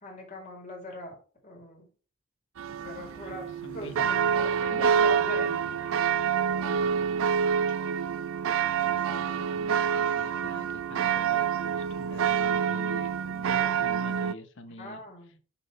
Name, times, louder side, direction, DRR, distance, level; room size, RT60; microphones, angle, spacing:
voice 1, 0.0-1.2 1.4-1.9 2.7-3.5 3.7-6.1 6.3-6.8 14.8-15.4, left 1 dB, 35° left, 0 dB, 2.2 m, -42 dB
sound 1, 2.6-14.3, right 7 dB, 70° right, 0.4 m, -27 dB
voice 2, 3.2-5.0 6.7-7.3 8.6-15.1, left 2 dB, 60° left, 9 dB, 0.8 m, -46 dB
5.7 x 4.1 x 4.2 m, 0.39 s
head